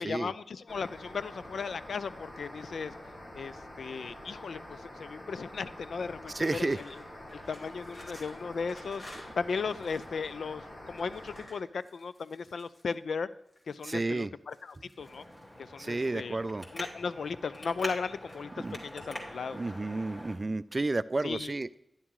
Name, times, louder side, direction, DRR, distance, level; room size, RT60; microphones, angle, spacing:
voice 1, 0.0-2.9 3.3-6.9 7.3-9.0 9.4-13.3 13.7-15.2 15.6-16.4 16.7-19.6 21.2-21.5, left 5 dB, 90° left, 15 dB, 0.4 m, -36 dB
sound 1, 0.7-11.5, left 1 dB, 65° left, 2.7 m, -47 dB
voice 2, 6.3-6.8 13.8-14.3 15.8-16.7 18.6-18.8 19.5-21.7, right 2 dB, 35° right, 16 dB, 0.3 m, -31 dB
sound 2, 6.8-10.2 10.9-13.0 13.5-14.1 14.5-15.4 16.3-17.0 17.3-17.9 18.3-19.1, left 1 dB, 50° left, 2.1 m, -54 dB
Traffic noise roadway noise, 15.0-20.3, equal, 25° left, 2.6 m, -44 dB
11.0 x 10.5 x 3.2 m, 0.81 s
wide cardioid pair, 95°, 0 cm